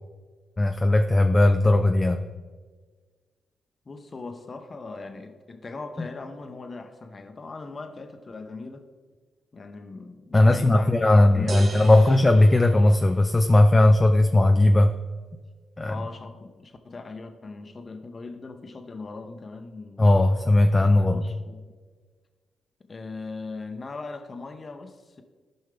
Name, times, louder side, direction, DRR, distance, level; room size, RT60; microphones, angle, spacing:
voice 1, 0.6-2.2 10.3-14.9 15.8-15.9 20.0-21.4, left 1 dB, 25° left, 6 dB, 0.6 m, -18 dB
voice 2, 3.8-8.9 9.5-11.0 11.2-12.1 15.9-20.1 21.0-21.6 22.8-25.2, left 3 dB, 40° left, 7 dB, 1.0 m, -39 dB
sound 1, 11.5-13.5, right 2 dB, 55° right, 1.5 m, -40 dB
14.0 x 5.5 x 3.4 m, 1.5 s
supercardioid pair, 50°, 0 cm